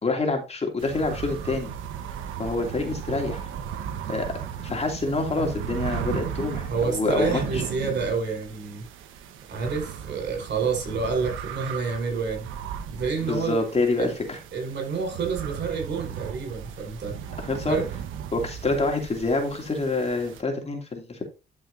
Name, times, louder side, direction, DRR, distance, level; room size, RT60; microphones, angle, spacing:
voice 1, 0.0-1.7 2.4-3.5 4.1-4.3 4.6-7.4 13.3-14.4 17.4-17.8 18.3-21.2, left 3 dB, 30° left, 2.8 m, -27 dB
sound 1, 0.8-20.4, right 8 dB, 90° right, 1.2 m, -36 dB
voice 2, 6.7-8.8 9.5-12.5 12.9-13.6 14.0-14.1 14.5-17.2 17.7-17.8, right 5 dB, 60° right, 5.4 m, -28 dB
12.0 x 6.2 x 2.7 m
cardioid pair, 90°, 20 cm